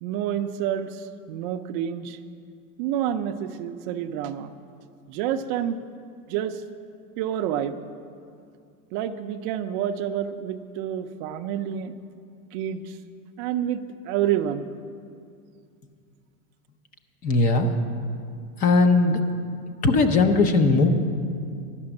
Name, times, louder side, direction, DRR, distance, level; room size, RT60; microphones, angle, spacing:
voice 1, 0.0-2.2 2.8-4.5 5.1-5.8 6.3-6.6 7.2-7.8 8.9-12.0 12.5-13.0 13.4-14.7, right 10 dB, 35° right, 7 dB, 0.5 m, -28 dB
voice 2, 17.2-17.7 18.6-19.2 19.8-20.9, left 3 dB, 20° left, 8 dB, 0.4 m, -19 dB
11.5 x 6.8 x 9.6 m, 2.3 s
supercardioid pair, 160°, 43 cm